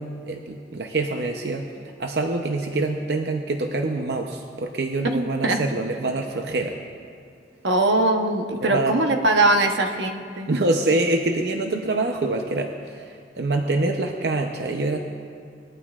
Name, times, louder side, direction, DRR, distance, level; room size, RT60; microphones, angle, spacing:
voice 1, 0.0-1.7 2.0-6.8 8.6-9.0 10.5-15.0, right 2 dB, 65° right, 3 dB, 0.7 m, -25 dB
voice 2, 5.1-5.6 7.6-10.5, right 2 dB, 85° right, 4 dB, 1.0 m, -21 dB
20.5 x 12.0 x 2.4 m, 2.3 s
head